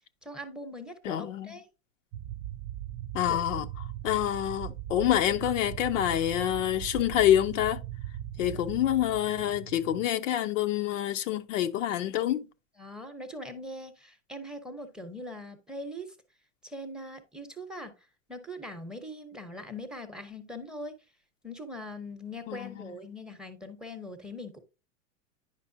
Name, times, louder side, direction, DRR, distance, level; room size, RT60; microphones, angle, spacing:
voice 1, 0.2-1.6 3.3-3.4 8.5-8.6 12.8-16.1 16.6-17.9 18.3-20.9 21.4-24.6, left 1 dB, ahead, 0.8 m, -41 dB
voice 2, 1.0-1.5 3.1-3.7 4.0-7.8 8.4-12.5 22.5-22.9, left 12 dB, 80° left, 0.8 m, -27 dB
sound 1, 2.1-10.1, right 12 dB, 40° right, 0.4 m, -39 dB
9.6 x 5.2 x 2.7 m
supercardioid pair, 130°, 37 cm